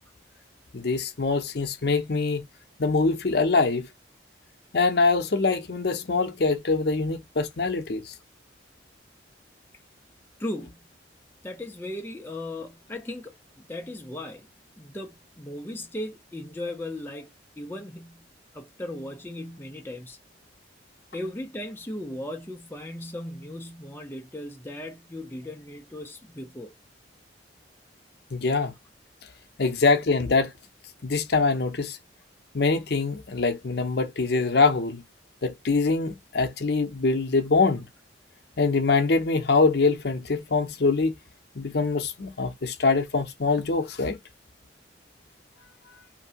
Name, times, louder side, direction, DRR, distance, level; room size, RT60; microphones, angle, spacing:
voice 1, 0.7-2.4 2.8-3.9 4.7-8.1 28.3-28.7 29.6-30.5 31.0-32.0 32.5-35.0 35.4-37.8 38.6-41.1 41.6-44.2, left 3 dB, 55° left, 0.7 m, -24 dB
voice 2, 10.4-10.9 11.4-14.5 14.8-18.3 18.5-20.2 21.1-26.7, left 1 dB, 10° left, 0.5 m, -37 dB
2.9 x 2.6 x 2.8 m
head